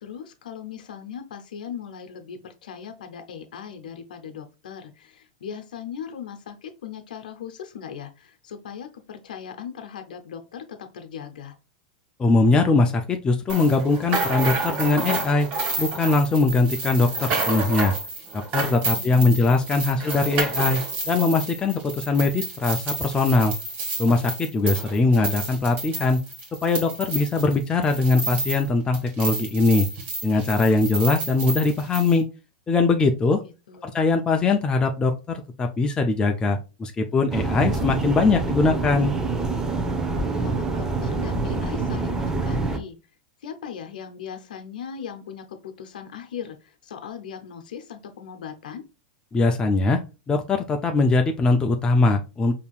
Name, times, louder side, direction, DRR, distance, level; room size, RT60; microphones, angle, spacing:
voice 1, 0.0-11.6 18.9-20.2 33.3-34.0 40.4-43.0 43.4-48.8, left 8 dB, 80° left, 6 dB, 0.7 m, -39 dB
voice 2, 12.2-15.5 15.8-17.9 18.5-20.8 21.1-23.5 24.0-26.2 26.6-29.9 30.2-32.3 32.7-33.4 33.8-39.1 49.3-50.0 50.3-52.6, left 3 dB, 20° left, 4 dB, 0.5 m, -21 dB
sound 1, 13.5-28.7 28.9-32.2, right 3 dB, 40° right, 1.6 m, -30 dB
sound 2, 37.3-42.8, right 3 dB, 15° right, 0.7 m, -26 dB
5.1 x 2.8 x 2.4 m, 0.30 s
hypercardioid pair, 120°, 4 cm